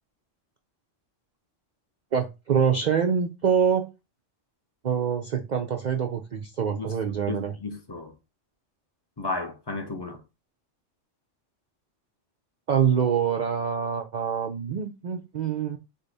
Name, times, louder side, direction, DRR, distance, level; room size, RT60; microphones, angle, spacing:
voice 1, 2.1-3.9 4.8-7.5 12.7-15.8, right 7 dB, 65° right, 0.4 m, -25 dB
voice 2, 7.3-8.1 9.2-10.2, left 3 dB, 25° left, 0.5 m, -33 dB
4.9 x 2.3 x 3.9 m
omnidirectional pair, 1.3 m